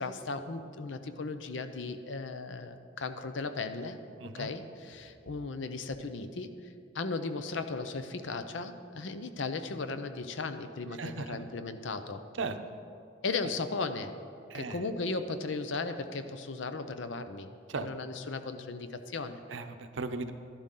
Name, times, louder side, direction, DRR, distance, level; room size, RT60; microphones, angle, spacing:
voice 1, 0.0-4.0 4.3-6.5 6.9-12.2 13.2-14.1 14.5-19.4, left 3 dB, 75° left, 10 dB, 0.6 m, -36 dB
voice 2, 11.0-11.5 12.4-12.8 14.5-14.8 17.7-17.9 19.5-20.3, right 3 dB, 80° right, 8 dB, 0.7 m, -37 dB
12.0 x 11.5 x 3.8 m, 2.6 s
head